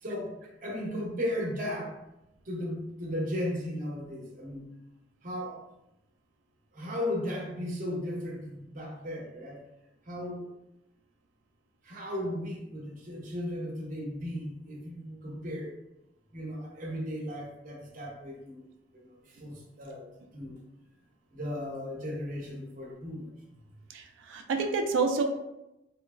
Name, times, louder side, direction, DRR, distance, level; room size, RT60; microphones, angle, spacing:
voice 1, 0.0-2.0 2.5-4.7 5.2-5.6 6.7-9.6 10.1-10.5 11.8-15.7 16.3-18.6 18.9-20.6 21.3-23.3, left 1 dB, 45° right, -2 dB, 0.7 m, -36 dB
voice 2, 23.9-25.2, right 4 dB, 80° right, 4 dB, 0.3 m, -28 dB
2.9 x 2.3 x 2.3 m, 0.90 s
head